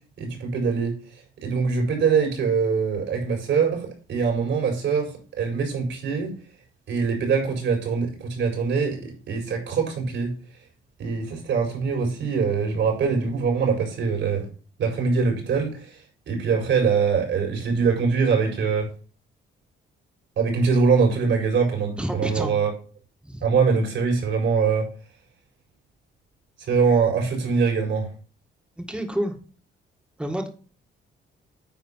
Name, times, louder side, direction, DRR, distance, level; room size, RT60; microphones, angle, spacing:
voice 1, 0.2-1.0 1.4-6.3 6.9-10.3 11.0-14.5 14.8-16.0 16.3-18.9 20.4-22.7 23.4-24.9 26.7-28.1, right 5 dB, 70° right, 1 dB, 4.7 m, -23 dB
voice 2, 22.0-22.5 23.2-23.4 28.9-29.3 30.2-30.5, equal, 5° right, 3 dB, 1.9 m, -28 dB
9.4 x 4.5 x 5.7 m, 0.38 s
cardioid pair, 90°, 20 cm